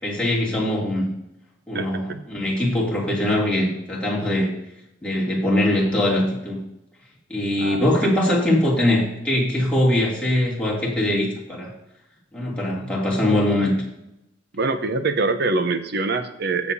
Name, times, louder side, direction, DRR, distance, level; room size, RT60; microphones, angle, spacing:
voice 1, 0.0-1.1 1.7-4.5 5.0-6.6 7.3-11.7 12.3-13.7, left 1 dB, 5° left, -6 dB, 2.8 m, -22 dB
voice 2, 1.7-2.2 7.6-7.8 14.5-16.7, right 3 dB, 60° right, 9 dB, 0.8 m, -24 dB
16.5 x 6.9 x 2.8 m, 0.87 s
head